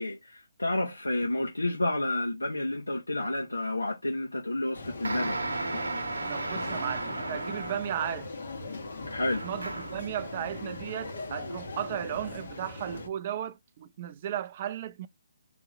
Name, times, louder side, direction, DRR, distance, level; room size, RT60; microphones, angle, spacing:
voice 1, 0.0-5.4 9.1-9.4, left 1 dB, 90° left, 1.1 m, -30 dB
sound 1, 4.7-13.1, left 3 dB, 65° left, 1.2 m, -40 dB
sound 2, 5.0-8.1 9.3-10.1, right 3 dB, 80° right, 1.0 m, -34 dB
voice 2, 6.3-8.3 9.4-15.1, right 10 dB, 40° right, 0.5 m, -35 dB
3.5 x 3.0 x 3.6 m
figure-of-eight pair, 140°, 0 cm